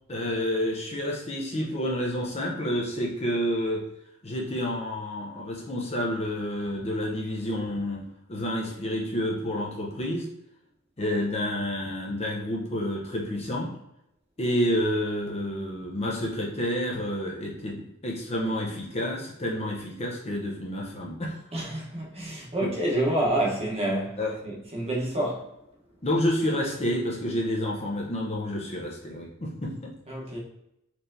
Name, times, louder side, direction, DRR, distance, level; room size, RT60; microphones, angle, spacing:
voice 1, 0.1-3.8 4.2-10.3 11.0-13.7 14.4-21.4 22.6-22.7 24.2-24.3 26.0-29.9, left 1 dB, 30° left, 0.7 m, -29 dB
voice 2, 21.5-25.5 30.1-30.4, right 1 dB, 30° right, 1.0 m, -28 dB
4.3 x 3.2 x 2.6 m
head